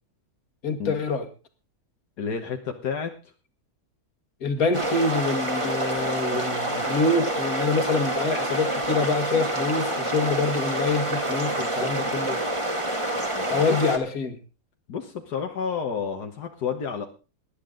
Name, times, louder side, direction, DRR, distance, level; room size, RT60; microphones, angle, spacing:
voice 1, 0.6-1.3 4.4-12.4 13.5-14.4, left 3 dB, 65° left, 8 dB, 2.2 m, -26 dB
voice 2, 2.2-3.1 13.2-13.8 14.9-17.1, left 6 dB, 80° left, 4 dB, 1.8 m, -30 dB
sound 1, 4.7-14.0, right 1 dB, 20° right, 2.1 m, -27 dB
19.0 x 11.5 x 3.8 m, 0.32 s
omnidirectional pair, 1.7 m